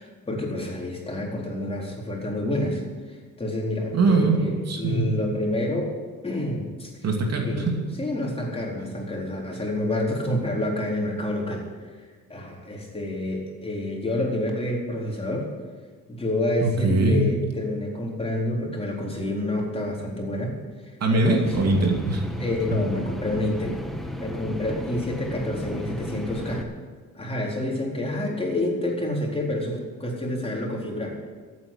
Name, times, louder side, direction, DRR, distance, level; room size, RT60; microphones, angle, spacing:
voice 1, 0.0-2.8 3.4-6.0 6.2-6.9 7.5-7.7 8.0-11.7 12.3-15.5 16.1-20.6 21.1-21.7 22.4-23.8 24.2-26.7 27.1-31.2, left 1 dB, 20° left, -2 dB, 4.3 m, -28 dB
voice 2, 3.9-4.4 4.7-5.1 7.0-7.8 16.6-17.3 21.0-22.3, right 2 dB, 55° right, 2 dB, 2.7 m, -22 dB
sound 1, 21.4-26.6, equal, ahead, 1.7 m, -34 dB
14.0 x 8.9 x 9.1 m, 1.5 s
cardioid pair, 90°, 30 cm